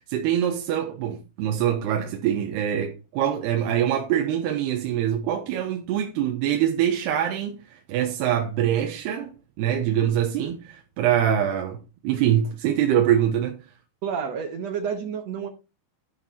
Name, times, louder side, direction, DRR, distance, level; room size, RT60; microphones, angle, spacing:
voice 1, 0.1-13.6, right 10 dB, 85° right, 3.1 m, -24 dB
voice 2, 14.0-15.5, right 7 dB, 70° right, 1.6 m, -29 dB
11.5 x 6.2 x 4.4 m
omnidirectional pair, 4.7 m